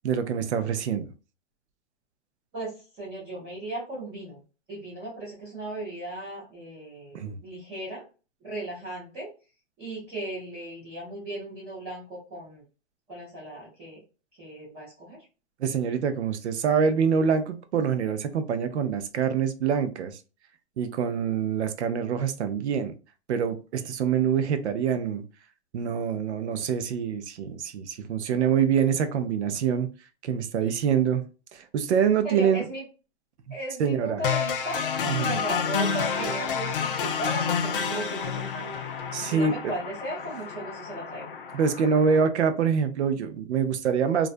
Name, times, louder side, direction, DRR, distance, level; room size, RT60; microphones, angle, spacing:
voice 1, 0.0-1.1 7.1-7.4 15.6-20.2 20.8-22.9 23.3-25.2 25.7-29.9 30.2-31.2 31.5-32.7 33.5-33.6 33.8-34.2 35.1-35.3 39.1-39.7 41.5-44.3, right 7 dB, 75° right, 0.6 m, -25 dB
voice 2, 2.5-4.4 4.7-8.0 8.4-9.3 9.8-12.6 13.1-14.0 14.3-15.2 32.2-32.8 33.5-38.8 39.2-41.4, right 1 dB, 15° right, 0.5 m, -37 dB
sound 1, 34.2-42.2, left 6 dB, 55° left, 0.4 m, -30 dB
2.4 x 2.2 x 2.4 m
hypercardioid pair, 170°, 34 cm